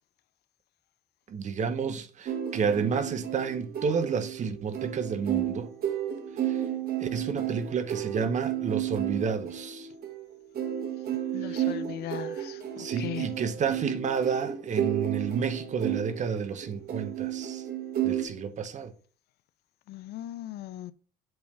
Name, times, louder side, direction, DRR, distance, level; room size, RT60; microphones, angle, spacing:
voice 1, 1.3-5.7 6.4-6.6 7.0-9.9 11.5-11.7 12.8-17.6 18.0-18.9, right 6 dB, 45° right, 0.9 m, -30 dB
sound 1, 2.3-18.3, right 10 dB, 60° right, 1.6 m, -32 dB
voice 2, 11.3-13.3 19.9-20.9, left 11 dB, 70° left, 0.5 m, -38 dB
7.8 x 3.4 x 5.4 m
cardioid pair, 110°, 17 cm